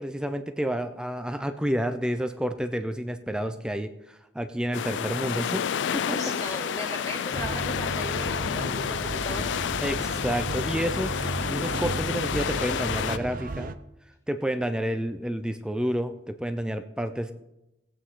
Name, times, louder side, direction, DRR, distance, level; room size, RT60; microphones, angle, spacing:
voice 1, 0.0-5.6 5.9-6.2 9.8-11.2 11.5-13.7 14.3-17.3, equal, 5° right, 8 dB, 0.5 m, -30 dB
sound 1, 4.7-13.2, left 8 dB, 80° left, 0.3 m, -30 dB
voice 2, 6.1-9.5, equal, 20° left, 0 dB, 2.2 m, -37 dB
sound 2, 7.3-13.8, right 2 dB, 50° right, 0.6 m, -34 dB
18.5 x 8.4 x 3.8 m, 0.91 s
head